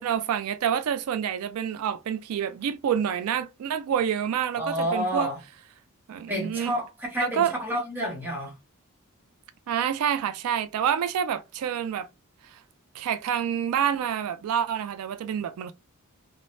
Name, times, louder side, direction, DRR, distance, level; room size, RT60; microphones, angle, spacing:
voice 1, 0.0-5.3 6.1-6.7 7.2-7.5 9.7-12.1 12.5-12.6 12.9-15.7, right 8 dB, 80° right, 0.3 m, -27 dB
voice 2, 4.6-5.4 6.3-8.5, equal, 10° right, 0.9 m, -29 dB
2.6 x 2.0 x 3.0 m
head